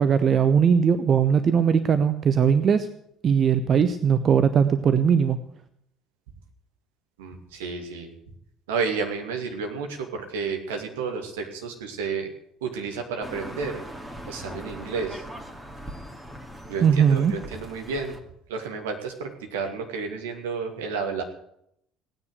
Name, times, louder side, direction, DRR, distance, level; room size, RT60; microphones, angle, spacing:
voice 1, 0.0-2.9 3.2-5.4 16.8-17.3, right 7 dB, 40° right, 11 dB, 0.9 m, -20 dB
voice 2, 7.2-8.1 8.7-12.3 12.6-13.8 14.3-15.2 16.7-18.2 18.5-21.2, right 5 dB, 70° right, 3 dB, 2.6 m, -31 dB
sound 1, 13.2-18.2, equal, 10° right, 2.4 m, -40 dB
17.0 x 9.8 x 8.1 m, 0.71 s
figure-of-eight pair, 55°, 0 cm